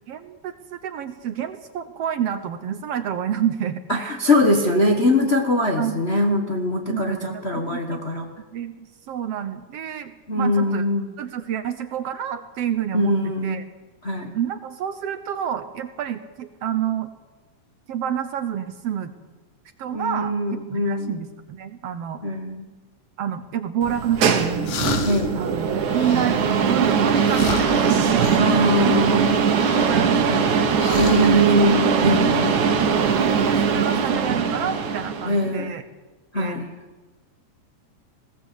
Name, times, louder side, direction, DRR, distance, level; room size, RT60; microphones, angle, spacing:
voice 1, 0.1-4.2 5.8-6.0 6.9-8.0 8.5-10.8 11.2-13.1 13.4-13.6 14.3-17.1 17.9-19.1 19.8-22.2 23.2-24.8 25.4-29.0 29.3-31.5 33.5-35.8 36.3-36.6, right 9 dB, 65° right, 11 dB, 1.7 m, -29 dB
voice 2, 3.9-8.3 10.3-11.1 12.9-13.6 14.0-14.3 19.9-21.2 22.2-22.7 25.0-25.4 28.4-29.4 31.0-32.5 33.7-34.2 35.2-35.7 36.3-36.7, left 1 dB, 30° left, 3 dB, 1.2 m, -22 dB
sound 1, 23.8-35.4, right 6 dB, 85° right, 3.1 m, -21 dB
sound 2, 24.7-25.4 25.8-26.5 27.1-28.4 29.5-30.5 30.7-31.3, left 5 dB, 75° left, 3.3 m, -31 dB
20.5 x 17.0 x 8.4 m, 1.2 s
omnidirectional pair, 3.4 m